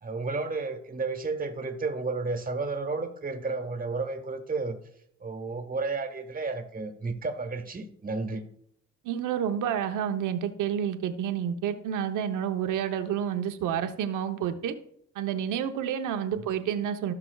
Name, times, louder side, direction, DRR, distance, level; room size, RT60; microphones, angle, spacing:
voice 1, 0.0-4.8 5.2-8.4 16.4-16.5, right 3 dB, 30° right, 6 dB, 1.4 m, -32 dB
voice 2, 9.0-14.7 15.1-17.1, right 9 dB, 85° right, 7 dB, 0.9 m, -29 dB
16.0 x 5.9 x 2.3 m, 0.69 s
cardioid pair, 90°, 30 cm